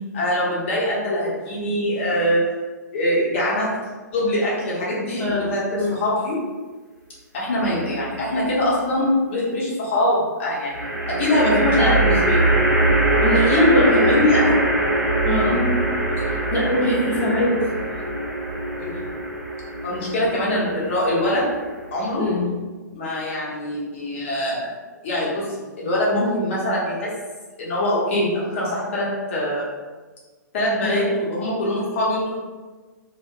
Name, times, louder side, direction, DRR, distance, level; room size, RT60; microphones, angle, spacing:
voice 1, 0.1-2.4 2.9-3.7 4.1-5.2 5.5-5.6 5.9-6.4 7.3-12.5 13.5-14.5 15.4-15.7 17.5-17.6 18.8-19.1 19.8-21.4 21.9-22.2 22.9-24.7 25.0-25.5 25.8-27.1 27.6-29.6 30.5-32.3, left 1 dB, 40° left, -6 dB, 0.8 m, -23 dB
voice 2, 5.2-6.0 11.4-12.0 13.2-14.2 15.2-15.5 16.3-17.5 22.2-22.5 30.8-31.1, left 1 dB, 15° left, -7 dB, 0.6 m, -22 dB
sound 1, 7.6-8.3 10.7-22.1, right 2 dB, 75° right, 0.5 m, -22 dB
2.5 x 2.1 x 2.3 m, 1.3 s
figure-of-eight pair, 120°, 10 cm